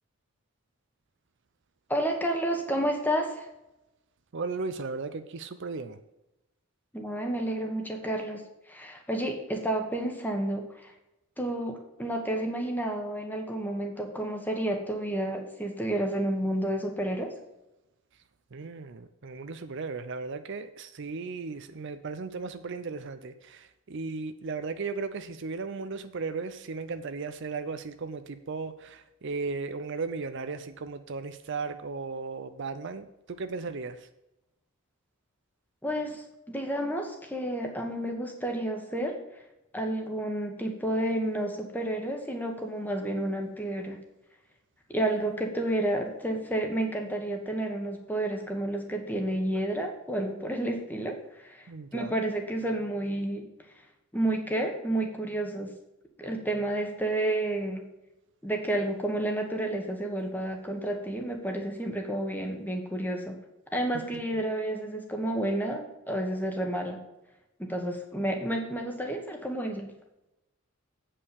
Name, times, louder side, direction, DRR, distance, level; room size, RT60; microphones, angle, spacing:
voice 1, 1.9-3.5 6.9-10.9 11.4-17.3 35.8-39.2 39.7-44.0 44.9-53.4 54.1-55.7 56.2-57.8 58.4-63.4 63.7-67.0 67.6-69.9, right 1 dB, 10° left, 3 dB, 1.3 m, -30 dB
voice 2, 4.3-6.0 18.5-34.0 51.7-52.1, right 4 dB, 55° right, 10 dB, 0.5 m, -36 dB
8.4 x 5.5 x 7.0 m, 0.94 s
head